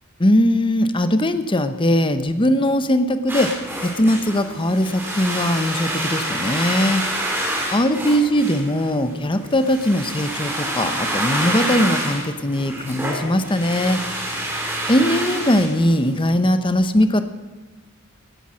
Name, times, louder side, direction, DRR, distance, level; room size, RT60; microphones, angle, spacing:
voice 1, 0.2-3.5 3.8-7.0 7.7-14.0 14.9-17.2, left 1 dB, 20° left, 10 dB, 0.8 m, -20 dB
sound 1, 3.3-16.3, right 1 dB, 10° right, 4.6 m, -27 dB
17.5 x 10.0 x 6.3 m, 1.2 s
head